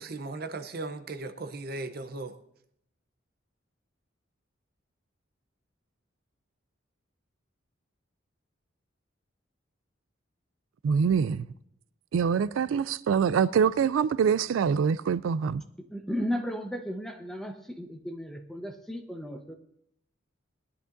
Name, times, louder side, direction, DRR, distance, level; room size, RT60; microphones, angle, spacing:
voice 1, 0.0-2.4, right 2 dB, 50° right, 0.7 m, -37 dB
voice 2, 10.8-11.5 12.1-15.6, right 6 dB, 90° right, 0.3 m, -25 dB
voice 3, 15.8-19.6, equal, ahead, 0.9 m, -35 dB
18.5 x 11.0 x 2.6 m
head